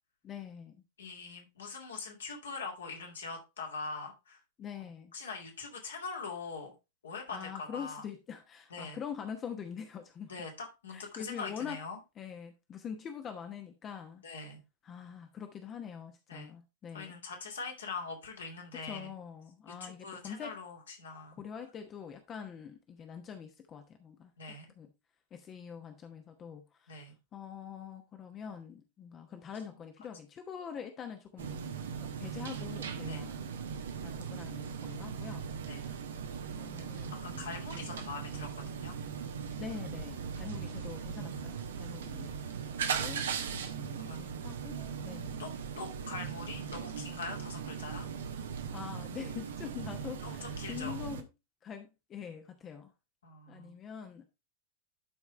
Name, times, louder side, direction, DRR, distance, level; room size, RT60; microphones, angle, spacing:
voice 1, 0.2-0.8 4.6-5.1 7.3-10.3 10.9-11.8 12.2-14.2 14.8-17.2 18.8-20.6 21.4-24.9 25.3-33.4 34.0-35.5 35.8-36.0 36.5-38.0 39.6-42.6 43.0-45.4 48.7-51.3 51.6-52.9 53.5-54.2, left 7 dB, 25° left, 1.1 m, -44 dB
voice 2, 1.0-4.4 5.1-6.7 7.0-8.0 8.7-9.0 10.3-12.0 14.2-14.6 16.3-16.5 16.9-19.1 19.7-21.4 24.4-24.7 26.9-27.1 33.1-33.2 35.7-35.8 37.2-39.0 44.0-44.2 45.4-45.5 45.8-48.1 50.2-51.0 53.2-53.8, left 4 dB, 70° left, 2.5 m, -42 dB
sound 1, 31.4-51.2, right 7 dB, 65° right, 1.1 m, -39 dB
11.5 x 4.8 x 3.3 m
figure-of-eight pair, 90°, 0 cm